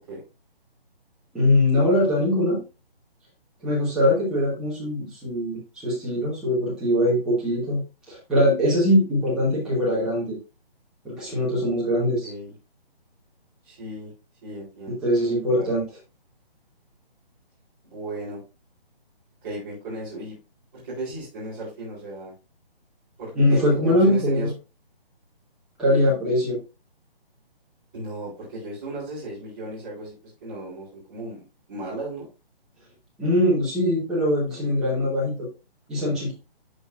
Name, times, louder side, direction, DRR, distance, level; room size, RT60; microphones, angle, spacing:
voice 1, 1.3-2.6 3.6-7.8 8.1-10.4 11.0-12.3 14.9-15.8 23.3-24.5 25.8-26.6 33.2-35.5 35.9-36.3, left 1 dB, ahead, -7 dB, 1.2 m, -22 dB
voice 2, 13.6-14.1 14.4-15.7 17.9-18.4 19.4-20.4 20.7-22.3 23.2-24.5 27.9-30.1 30.4-31.4 31.7-32.3, right 2 dB, 25° right, -8 dB, 3.3 m, -35 dB
11.5 x 4.1 x 2.4 m, 0.30 s
hypercardioid pair, 170°, 30 cm